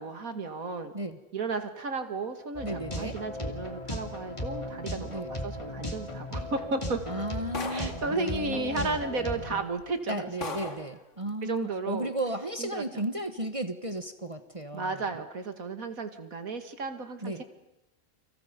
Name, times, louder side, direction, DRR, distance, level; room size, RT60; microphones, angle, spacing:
voice 1, 0.0-0.9 1.3-7.0 7.7-10.6 11.4-12.1 12.6-12.8 14.7-17.3, right 3 dB, 75° right, 7 dB, 2.5 m, -34 dB
sound 1, 2.5-9.6, left 1 dB, 20° left, 2.9 m, -36 dB
voice 2, 2.6-3.2 5.0-5.3 7.1-9.0 10.1-15.2 17.2-17.4, right 1 dB, 25° right, 8 dB, 1.3 m, -34 dB
sound 2, 7.5-8.1 9.1-9.2 9.8-9.9 10.4-10.9, left 3 dB, 60° left, 2.3 m, -36 dB
29.5 x 26.5 x 5.3 m, 0.95 s
omnidirectional pair, 1.5 m